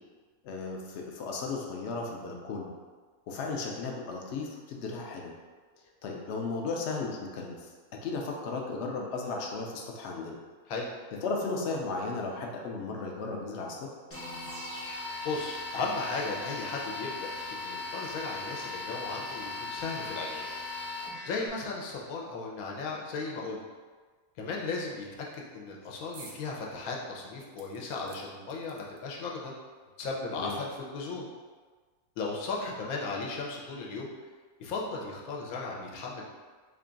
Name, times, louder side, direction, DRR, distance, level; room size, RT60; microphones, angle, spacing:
voice 1, 0.4-2.7 3.3-5.3 6.0-7.7 8.0-10.4 11.2-13.9 30.4-30.6, left 3 dB, 65° left, 0 dB, 0.7 m, -35 dB
sound 1, 14.1-21.5, left 3 dB, 15° left, 0.5 m, -38 dB
voice 2, 15.2-20.5 21.3-23.6 24.4-25.1 25.3-29.5 30.0-31.3 32.2-34.1 34.6-36.2, left 3 dB, 80° left, -2 dB, 1.1 m, -36 dB
sound 2, 26.1-26.4 26.8-26.9 27.6-29.2 30.1-30.2 30.5-30.6, right 4 dB, 80° right, 1.0 m, -52 dB
3.6 x 2.3 x 3.8 m, 1.5 s
omnidirectional pair, 1.5 m